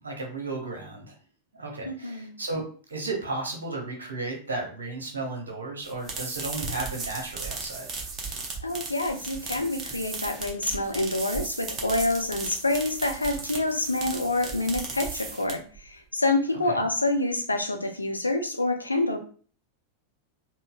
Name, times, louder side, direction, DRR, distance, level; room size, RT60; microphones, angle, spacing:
voice 1, 0.0-1.1 1.6-7.9 16.7-16.8, right 3 dB, 70° right, 1 dB, 0.7 m, -34 dB
voice 2, 1.9-2.3 8.6-19.2, left 2 dB, 80° left, 6 dB, 0.4 m, -27 dB
sound 1, 5.8-15.8, right 4 dB, 25° right, 0.8 m, -36 dB
3.9 x 2.0 x 2.3 m, 0.43 s
figure-of-eight pair, 90°, 0 cm